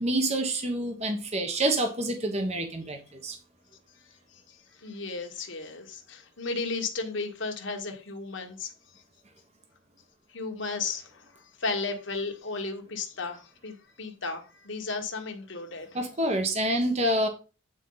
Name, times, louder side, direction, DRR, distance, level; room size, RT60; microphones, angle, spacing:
voice 1, 0.0-3.4 15.9-17.3, right 1 dB, 30° right, 1.1 m, -27 dB
voice 2, 4.3-8.7 10.3-15.9, left 4 dB, 65° left, 1.5 m, -34 dB
9.1 x 4.5 x 3.9 m
head